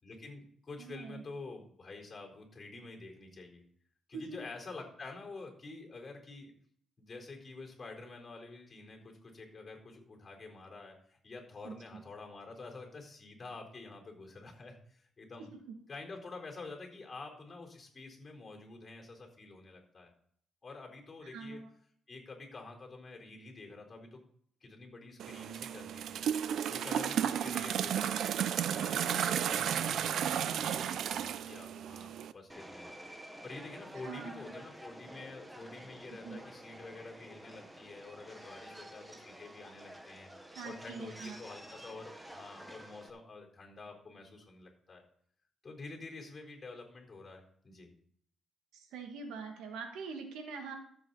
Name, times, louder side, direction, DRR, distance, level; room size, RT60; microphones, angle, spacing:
voice 1, 0.0-3.6 4.1-6.5 7.0-15.5 15.9-20.1 20.6-21.6 22.1-24.2 24.6-26.3 26.7-28.2 28.7-32.9 33.4-45.0 45.6-47.9, left 3 dB, 30° left, 0 dB, 4.3 m, -48 dB
voice 2, 0.8-1.2 4.1-4.4 11.6-12.0 15.4-15.8 21.2-21.7 29.5-29.9 34.0-34.5 36.2-36.4 40.5-41.4 48.7-50.8, right 5 dB, 85° right, 3 dB, 2.2 m, -44 dB
sound 1, 25.2-32.3, right 9 dB, 70° right, 0.5 m, -33 dB
Subway metro underground, 32.5-43.1, right 1 dB, 10° right, 1.3 m, -50 dB
13.5 x 7.7 x 4.2 m, 0.63 s
cardioid pair, 90°, 0 cm